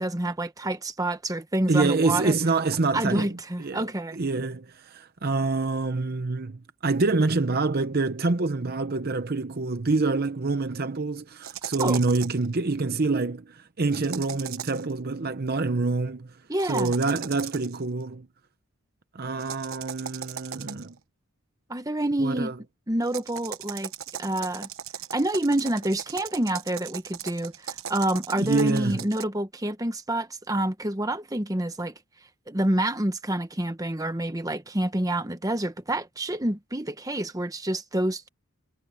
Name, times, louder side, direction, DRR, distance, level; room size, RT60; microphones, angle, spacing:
voice 1, 0.0-2.4 2.9-4.2 11.8-12.0 16.5-16.9 21.7-22.5 22.9-23.9 24.2-24.7 25.1-31.9 32.5-38.3, right 1 dB, 15° right, 1.2 m, -28 dB
voice 2, 1.7-18.3 19.1-21.0 22.2-22.5 28.4-29.0, right 3 dB, 45° right, 0.8 m, -26 dB
sound 1, 11.4-12.5 13.9-14.9 16.6-17.8 19.4-21.0 23.0-29.2, right 9 dB, 65° right, 1.1 m, -38 dB
head